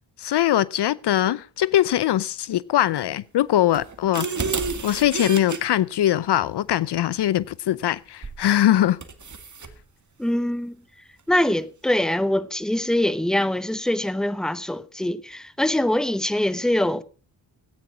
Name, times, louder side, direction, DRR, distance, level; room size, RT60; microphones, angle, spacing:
voice 1, 0.2-4.3 4.8-9.0, left 12 dB, 65° left, 0.6 m, -21 dB
sound 1, 3.7-5.6 8.2-8.5 9.0-9.7, right 4 dB, 40° right, 2.0 m, -30 dB
voice 2, 10.2-10.7 11.3-17.0, left 1 dB, ahead, 1.0 m, -23 dB
14.0 x 9.2 x 6.0 m
cardioid pair, 55°, 44 cm